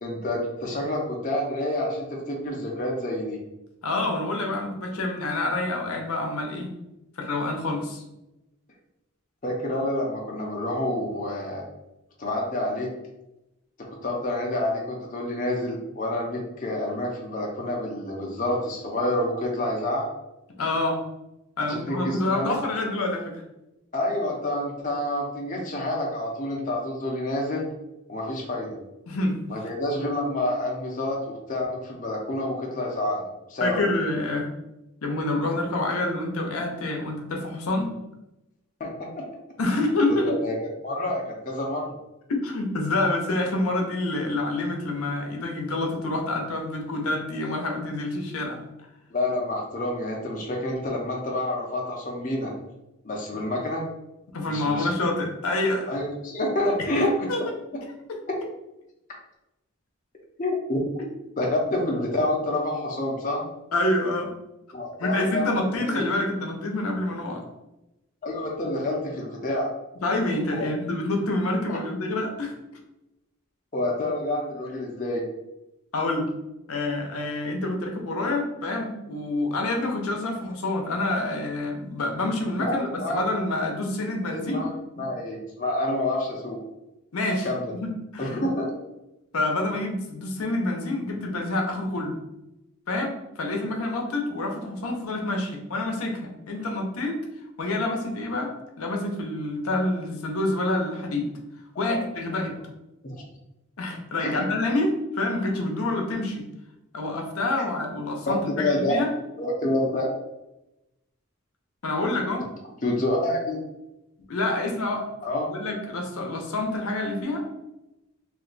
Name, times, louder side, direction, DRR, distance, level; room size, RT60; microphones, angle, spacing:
voice 1, 0.0-3.4 9.4-11.7 12.2-12.9 13.8-20.1 21.7-22.6 23.9-27.7 28.1-28.8 29.5-33.2 33.5-33.9 38.8-39.2 40.2-40.5 40.8-41.9 49.1-52.5 53.0-53.8 54.4-54.9 55.9-57.3 60.4-60.8 61.4-63.4 64.7-66.0 68.2-69.7 70.6-70.7 71.7-71.8 73.7-75.2 83.0-83.2 84.5-84.7 85.0-86.6 87.4-87.7 88.2-88.7 101.8-102.0 103.0-103.2 104.2-104.4 108.3-109.0 109.4-110.1 112.8-113.6 115.2-115.5, left 1 dB, 35° left, -1 dB, 0.5 m, -28 dB
voice 2, 3.8-6.7 7.2-8.0 20.6-21.0 21.6-23.4 29.1-29.4 33.6-34.5 35.0-37.9 39.6-40.4 42.3-48.6 54.3-55.9 56.9-57.4 63.7-64.3 65.0-67.4 70.0-72.5 75.9-76.3 76.7-84.6 85.0-85.1 87.1-87.5 87.7-88.5 89.3-92.2 92.9-97.2 97.6-101.3 101.8-102.6 103.8-106.5 106.9-109.1 111.8-112.4 114.3-115.0 115.5-117.4, left 2 dB, 90° left, 2 dB, 0.6 m, -27 dB
2.5 x 2.2 x 3.8 m, 0.92 s
head